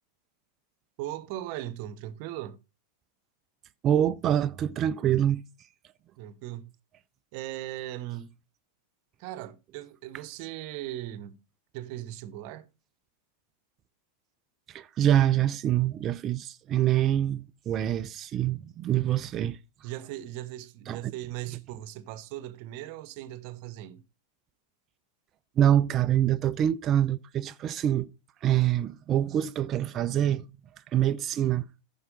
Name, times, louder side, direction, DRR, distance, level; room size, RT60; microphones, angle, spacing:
voice 1, 1.0-2.6 6.2-6.7 7.3-8.3 9.2-11.4 11.7-12.7 19.8-24.0, right 14 dB, 45° right, 1.0 m, -38 dB
voice 2, 3.8-5.4 14.7-19.6 20.9-21.0 25.6-28.1 28.4-30.4 30.9-31.7, right 11 dB, 30° right, 0.6 m, -25 dB
14.5 x 5.9 x 3.8 m
figure-of-eight pair, 90°, 0 cm